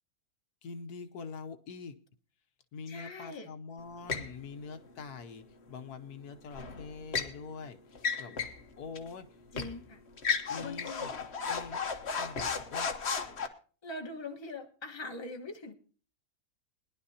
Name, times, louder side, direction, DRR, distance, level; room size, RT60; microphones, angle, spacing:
voice 1, 0.6-2.0 2.7-8.4 8.8-9.4 10.5-11.2 11.5-11.8 12.2-12.4 12.7-12.9, left 5 dB, 75° left, 8 dB, 1.4 m, -44 dB
voice 2, 2.9-3.5 9.5-10.0 10.5-11.1 13.2-13.3 13.8-15.7, left 2 dB, 20° left, 3 dB, 1.2 m, -42 dB
sound 1, 4.1-4.3 6.5-7.4 8.0-8.6 9.0-9.1 9.6-9.8 10.2-13.5, left 5 dB, 45° left, 1.2 m, -34 dB
21.5 x 11.0 x 2.8 m, 0.39 s
omnidirectional pair, 1.7 m